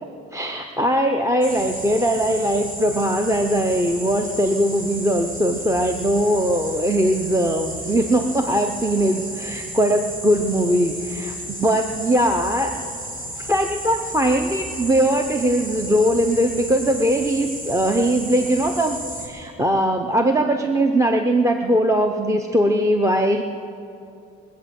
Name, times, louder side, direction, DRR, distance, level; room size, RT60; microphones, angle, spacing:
voice 1, 0.3-12.9 13.5-23.4, equal, 10° right, 5 dB, 0.8 m, -20 dB
sound 1, 1.4-19.3, right 1 dB, 25° right, 3.8 m, -33 dB
21.5 x 8.2 x 7.8 m, 2.7 s
cardioid pair, 90°, 30 cm